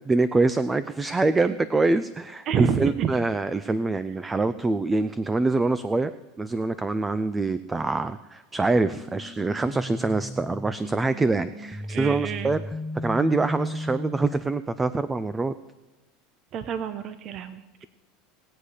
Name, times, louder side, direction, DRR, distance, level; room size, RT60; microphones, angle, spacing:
voice 1, 0.0-6.1 6.4-12.6 13.0-15.5, right 3 dB, 15° right, 14 dB, 0.5 m, -25 dB
voice 2, 2.5-3.1 11.9-12.5 16.5-17.8, right 8 dB, 45° right, 11 dB, 0.9 m, -28 dB
sound 1, 8.7-14.7, left 1 dB, 10° left, 0.8 m, -36 dB
19.5 x 8.2 x 5.0 m, 1.2 s
supercardioid pair, 125°, 0 cm